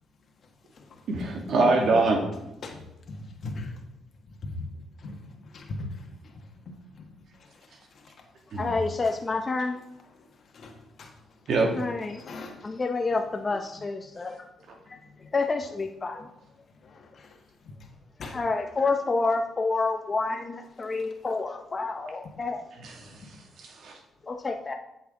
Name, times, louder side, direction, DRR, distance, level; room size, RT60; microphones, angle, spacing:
voice 1, 1.1-2.2 8.5-8.7 11.5-11.7 22.8-23.1 23.6-24.0, right 3 dB, 65° right, 1 dB, 1.9 m, -24 dB
voice 2, 2.6-3.8 4.3-4.5 5.0-8.2 8.5-8.6 10.1-11.1 12.1-12.7 15.2-15.3 16.8-17.4 17.6-17.9 18.2-18.4 23.1-23.3, left 2 dB, 55° left, 1 dB, 1.5 m, -42 dB
voice 3, 8.6-9.8 11.7-12.3 12.6-14.5 14.9-15.0 15.3-16.3 18.3-22.7 24.2-24.7, left 3 dB, 30° left, 4 dB, 0.6 m, -28 dB
8.3 x 7.3 x 3.7 m, 0.86 s
cardioid pair, 90°, 0 cm